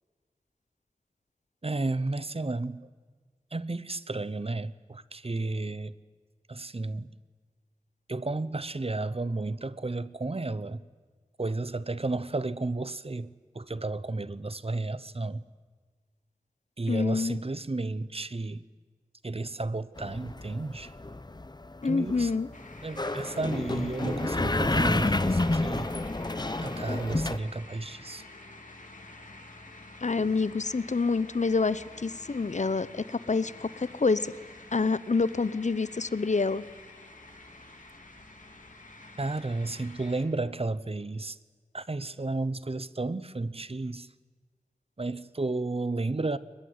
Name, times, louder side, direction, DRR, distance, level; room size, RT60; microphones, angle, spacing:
voice 1, 1.6-2.9 3.5-5.9 6.5-7.2 8.1-10.9 11.4-15.4 16.8-18.7 19.2-20.9 21.8-22.3 22.8-25.9 26.6-28.2 30.2-30.3 39.2-41.4 41.7-44.1 45.0-46.4, right 2 dB, 50° right, 0.9 m, -32 dB
voice 2, 16.9-17.4 21.8-22.5 30.0-34.3 34.7-36.6, left 4 dB, 65° left, 0.8 m, -27 dB
sound 1, 20.0-27.4, left 2 dB, 35° left, 0.9 m, -29 dB
sound 2, 22.5-40.2, left 2 dB, 90° left, 3.5 m, -49 dB
22.5 x 21.0 x 9.6 m
wide cardioid pair, 45°, 13 cm